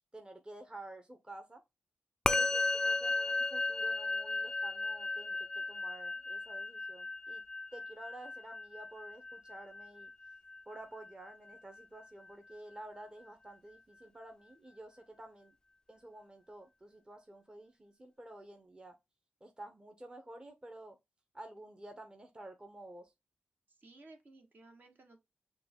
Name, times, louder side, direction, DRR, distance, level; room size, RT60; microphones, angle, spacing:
voice 1, 0.1-1.6 2.3-7.4 7.7-10.1 10.7-15.5 15.9-18.9 19.4-21.0 21.3-23.1, right 1 dB, 20° right, 0.9 m, -51 dB
Musical instrument, 2.3-11.8, left 3 dB, 20° left, 0.4 m, -35 dB
voice 2, 2.3-2.9 23.7-25.2, right 2 dB, 50° right, 1.2 m, -59 dB
5.8 x 2.4 x 3.5 m
cardioid pair, 55°, 4 cm